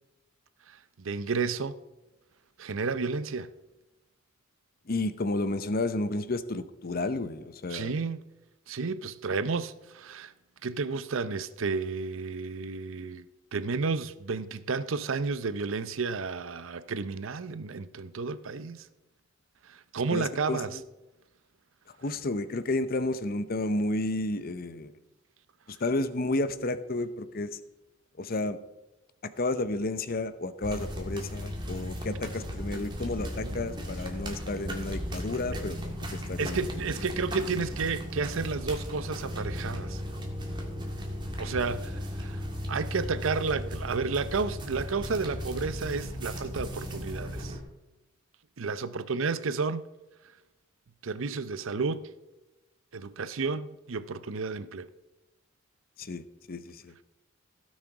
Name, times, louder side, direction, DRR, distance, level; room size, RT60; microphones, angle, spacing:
voice 1, 0.7-1.8 2.6-3.5 7.7-8.2 8.7-10.3 10.6-18.9 19.6-20.7 33.4-33.6 36.4-40.0 41.4-42.4 42.7-47.6 48.6-49.9 51.0-52.1 52.9-54.9, right 4 dB, 75° right, 0.6 m, -32 dB
voice 2, 4.9-8.0 20.1-20.8 22.0-24.9 25.7-27.6 28.2-28.6 29.2-36.7 56.0-56.9, left 2 dB, 45° left, 0.7 m, -31 dB
sound 1, 30.6-47.6, equal, 20° right, 1.7 m, -36 dB
16.0 x 6.4 x 4.7 m
head